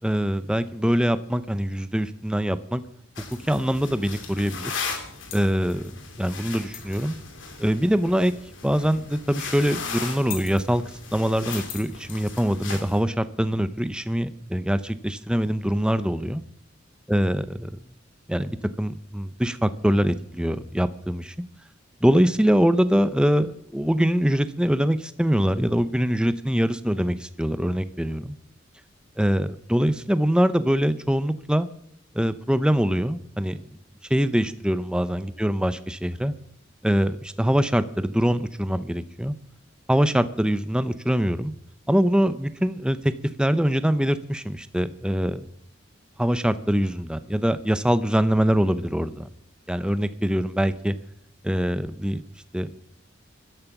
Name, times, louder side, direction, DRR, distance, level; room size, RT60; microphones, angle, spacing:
voice 1, 0.0-2.8 3.5-4.7 5.3-7.2 7.6-8.3 8.6-10.8 11.1-16.4 17.1-17.8 18.3-21.3 22.0-28.4 29.2-31.7 32.1-33.6 34.1-36.3 36.8-39.3 39.9-41.5 41.9-43.1 43.4-45.4 46.2-49.3 49.7-51.0 51.4-52.2 52.5-52.7, equal, 5° right, 12 dB, 0.7 m, -23 dB
sound 1, 3.2-13.0, left 5 dB, 75° left, 2.9 m, -37 dB
17.0 x 12.5 x 6.1 m, 0.66 s
head